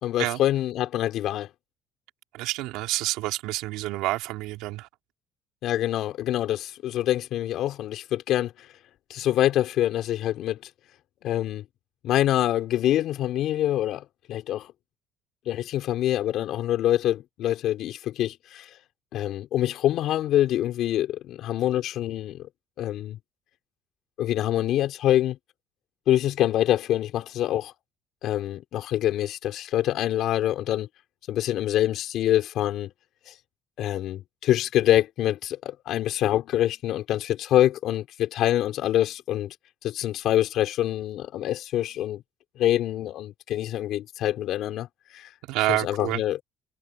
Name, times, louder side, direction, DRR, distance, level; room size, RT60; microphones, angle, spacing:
voice 1, 0.0-1.5 5.6-8.5 9.1-10.6 11.2-11.6 12.0-14.7 15.5-18.7 19.1-22.5 22.8-23.2 24.2-25.4 26.1-27.7 28.2-30.9 31.3-32.9 33.3-33.4 33.8-39.5 39.8-42.2 42.6-44.9 45.1-45.3 45.8-46.4, left 12 dB, 65° left, 4.4 m, -25 dB
voice 2, 2.3-4.9 45.5-46.2, right 18 dB, 85° right, 3.4 m, -28 dB
cardioid pair, 115°, 0 cm